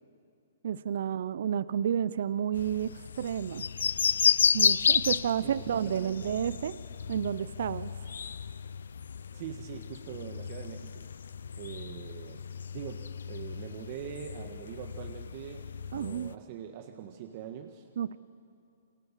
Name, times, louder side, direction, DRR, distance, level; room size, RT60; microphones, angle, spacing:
voice 1, 0.6-2.9 3.2-3.7 4.5-6.8 7.1-7.9 15.9-16.3 18.0-18.2, right 9 dB, 60° right, 17 dB, 0.7 m, -30 dB
sound 1, 2.5-16.3, left 6 dB, 80° left, 0.6 m, -32 dB
voice 2, 5.4-6.3 9.3-11.1 11.6-12.4 12.7-17.9, right 9 dB, 40° right, 4 dB, 1.5 m, -43 dB
28.5 x 23.5 x 7.5 m, 2.5 s
hypercardioid pair, 155°, 0 cm